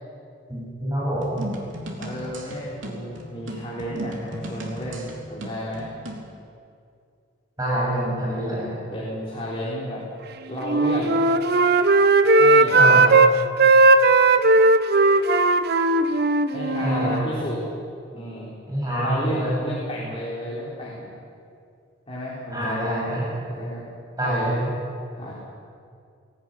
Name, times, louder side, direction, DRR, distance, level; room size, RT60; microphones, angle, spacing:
voice 1, 0.5-1.4 7.6-8.7 12.7-13.0 16.8-17.2 18.7-19.6 22.5-23.3 24.2-24.7, right 1 dB, 20° right, -6 dB, 7.8 m, -26 dB
sound 1, 1.2-6.3, equal, 85° right, 3.5 m, -36 dB
voice 2, 2.0-5.9 8.9-10.0 10.5-11.2 12.4-13.0 16.5-17.6 18.1-18.5 19.0-21.1 22.1-22.9 23.5-23.8 24.2-24.5 25.2-25.3, equal, 30° left, -6 dB, 4.3 m, -32 dB
Wind instrument woodwind instrument, 10.6-13.3 13.6-17.2, right 3 dB, 55° right, 0.9 m, -17 dB
19.5 x 18.0 x 9.3 m, 2.4 s
head